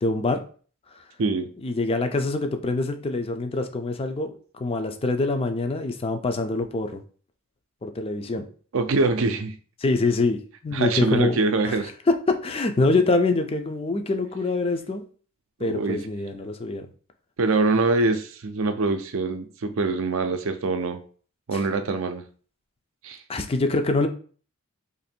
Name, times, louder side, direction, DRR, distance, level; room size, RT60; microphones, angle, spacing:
voice 1, 0.0-0.4 1.6-7.0 7.8-8.5 9.8-11.4 11.6-11.8 12.1-15.0 15.6-16.9 21.5-21.6 23.3-24.1, left 3 dB, 25° left, 6 dB, 0.4 m, -25 dB
voice 2, 1.2-1.5 8.7-9.5 10.7-11.9 15.6-16.0 17.4-21.0 21.5-22.2 23.0-23.2, right 3 dB, 65° right, 8 dB, 0.5 m, -24 dB
3.0 x 2.6 x 4.3 m, 0.42 s
head